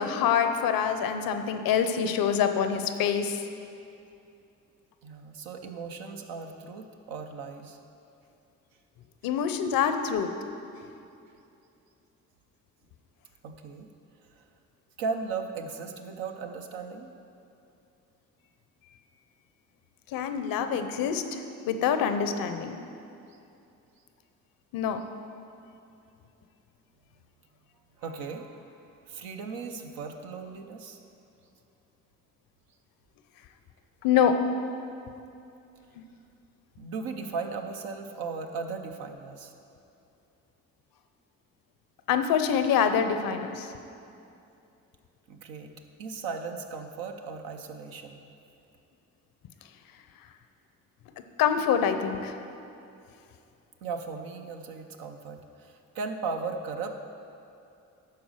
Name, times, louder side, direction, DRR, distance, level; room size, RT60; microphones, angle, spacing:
voice 1, 0.0-3.4 9.2-10.3 20.1-22.8 24.7-25.0 34.0-34.4 36.0-36.1 42.1-43.7 51.4-52.4, left 7 dB, 80° left, 8 dB, 0.7 m, -25 dB
voice 2, 5.0-7.8 13.4-13.9 14.3-14.4 15.0-17.1 23.3-23.4 28.0-28.8 29.1-31.0 36.8-39.5 45.3-48.2 53.8-57.0, right 4 dB, 90° right, 4 dB, 0.8 m, -37 dB
11.5 x 4.2 x 6.3 m, 2.6 s
supercardioid pair, 65°, 34 cm